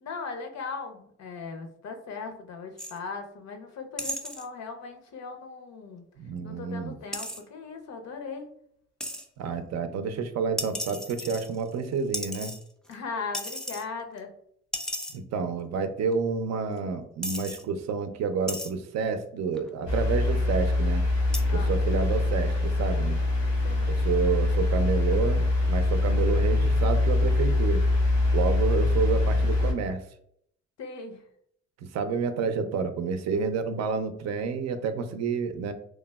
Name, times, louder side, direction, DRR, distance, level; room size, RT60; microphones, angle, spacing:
voice 1, 0.0-6.0 6.4-8.5 12.9-14.3 21.5-21.8 23.6-23.9 30.8-31.2, left 4 dB, 65° left, 5 dB, 0.6 m, -38 dB
sound 1, 2.8-3.0 4.0-4.5 7.1-7.4 9.0-9.2 10.6-11.7 12.1-12.9 13.3-13.8 14.2-14.3 14.7-15.2 16.1-16.2 16.8-16.9 17.2-17.6 18.5-18.7 19.6-19.9 21.3-21.4, equal, ahead, 0.4 m, -34 dB
voice 2, 6.2-7.0 9.4-12.5 15.1-21.0 21.5-23.2 23.9-27.8 28.3-30.0 31.9-35.7, right 5 dB, 60° right, 8 dB, 0.5 m, -29 dB
sound 2, 19.9-29.7, left 2 dB, 85° left, 1.1 m, -24 dB
3.2 x 2.0 x 2.2 m, 0.68 s
supercardioid pair, 60°, 29 cm